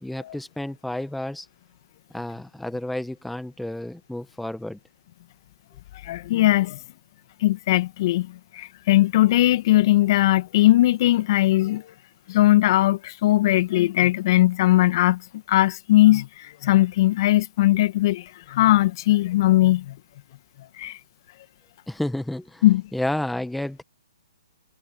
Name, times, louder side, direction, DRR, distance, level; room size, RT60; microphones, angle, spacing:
voice 1, 0.0-1.5 2.1-4.8 21.9-22.6 22.9-23.8, left 1 dB, ahead, 1.3 m, -31 dB
voice 2, 6.0-6.8 7.4-11.9 12.3-15.2 15.5-20.0 20.8-21.0 22.6-22.8, left 15 dB, 45° left, 1.8 m, -19 dB
hypercardioid pair, 140°, 3 cm